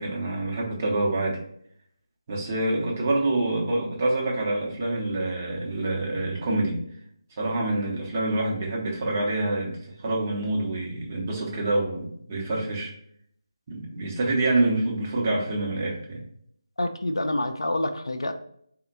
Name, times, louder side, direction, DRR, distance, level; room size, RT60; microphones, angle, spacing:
voice 1, 0.0-1.4 2.3-6.8 7.4-12.9 13.7-16.2, right 2 dB, 25° right, -2 dB, 0.7 m, -26 dB
voice 2, 16.8-18.3, left 1 dB, 65° left, 6 dB, 0.4 m, -27 dB
4.0 x 2.1 x 3.9 m, 0.67 s
figure-of-eight pair, 155°, 3 cm